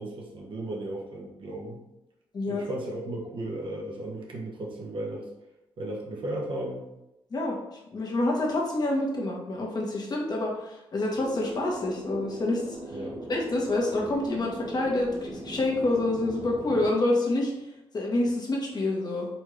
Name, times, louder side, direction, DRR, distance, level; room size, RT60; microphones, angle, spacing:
voice 1, 0.0-1.8 2.5-5.3 5.8-6.9 12.9-13.2, right 1 dB, 60° right, -1 dB, 1.2 m, -35 dB
voice 2, 2.3-2.6 7.3-7.6 7.9-12.8 13.3-17.5 17.9-19.3, left 2 dB, 45° left, -2 dB, 1.2 m, -27 dB
sound 1, 11.2-16.9, right 1 dB, 40° right, 0.9 m, -39 dB
4.2 x 3.5 x 3.2 m, 0.92 s
cardioid pair, 75°, 10 cm